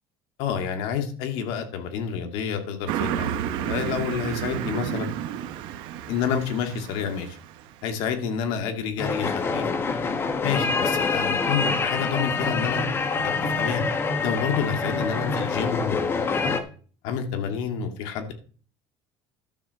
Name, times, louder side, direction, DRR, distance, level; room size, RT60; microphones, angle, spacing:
voice 1, 0.4-5.1 6.1-7.4 7.8-9.7 10.4-12.8 13.2-13.8 14.2-16.7 17.0-18.3, left 7 dB, 75° left, 5 dB, 2.4 m, -29 dB
Car passing by, 2.9-7.8, right 10 dB, 65° right, 1.1 m, -31 dB
sound 1, 9.0-16.6, left 4 dB, 25° left, 1.2 m, -26 dB
12.0 x 4.7 x 7.0 m, 0.41 s
cardioid pair, 150°, 9 cm